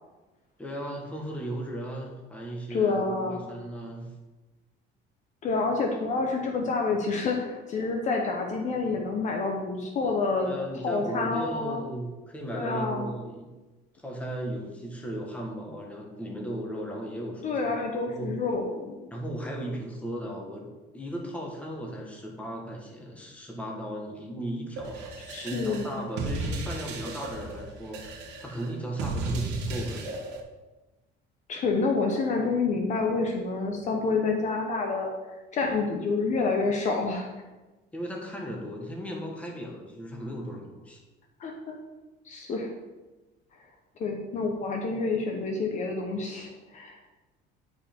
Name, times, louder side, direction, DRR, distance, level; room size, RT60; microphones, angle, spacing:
voice 1, 0.6-4.1 10.4-13.5 14.0-17.7 18.1-18.3 19.1-20.7 20.9-30.1 37.9-41.0, right 1 dB, 5° left, 0 dB, 1.3 m, -36 dB
voice 2, 2.7-3.4 5.4-10.6 10.8-11.8 12.5-13.1 17.4-19.1 25.3-26.0 31.5-35.1 35.5-37.3 41.4-41.8 42.3-42.7 44.0-47.0, left 3 dB, 40° left, 2 dB, 0.9 m, -28 dB
sound 1, 24.8-30.4, right 2 dB, 70° right, 1.4 m, -35 dB
9.6 x 5.2 x 4.5 m, 1.2 s
cardioid pair, 165°, 19 cm